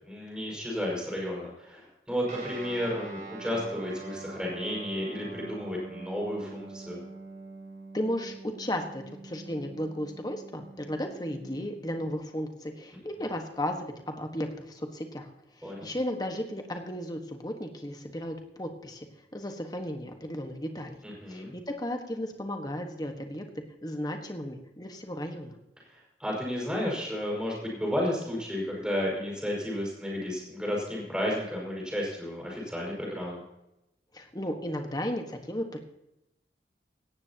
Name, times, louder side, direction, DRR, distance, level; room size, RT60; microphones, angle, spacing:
voice 1, 0.0-7.0 15.6-15.9 21.0-21.5 25.9-33.4, equal, 5° right, -3 dB, 5.6 m, -32 dB
Guitar, 2.2-12.2, right 3 dB, 45° right, 6.4 m, -44 dB
voice 2, 7.9-15.3 15.6-19.1 19.3-21.0 21.3-23.4 23.8-25.6 34.1-35.8, left 1 dB, 20° left, 5 dB, 1.4 m, -34 dB
18.0 x 14.0 x 2.9 m, 0.89 s
head